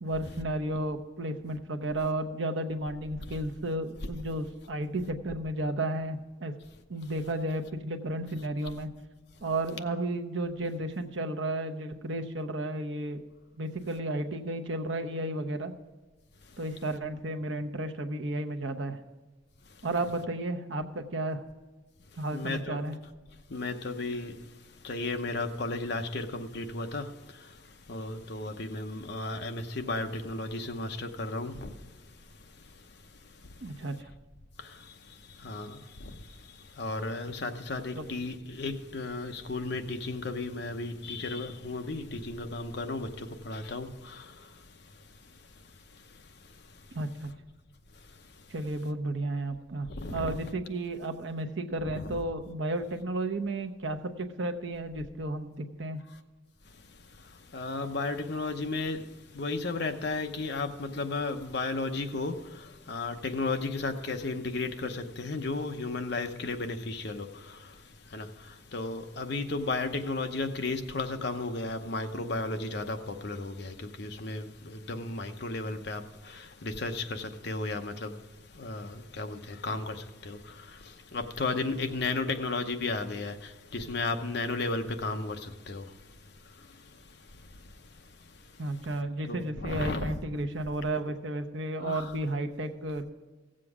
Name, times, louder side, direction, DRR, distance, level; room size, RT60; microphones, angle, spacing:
voice 1, 0.0-6.5 6.9-8.9 9.4-13.2 13.5-15.7 16.6-19.0 19.8-21.4 22.2-22.9 33.6-34.1 37.9-38.0 46.9-47.3 48.5-56.0 88.6-93.0, right 1 dB, 70° right, 0.9 m, -33 dB
voice 2, 22.1-22.8 23.5-33.9 34.6-47.0 47.9-48.5 49.9-50.4 51.8-52.2 56.6-88.8 89.3-90.2 91.8-92.1, left 3 dB, 55° left, 0.8 m, -35 dB
16.0 x 7.6 x 4.8 m
head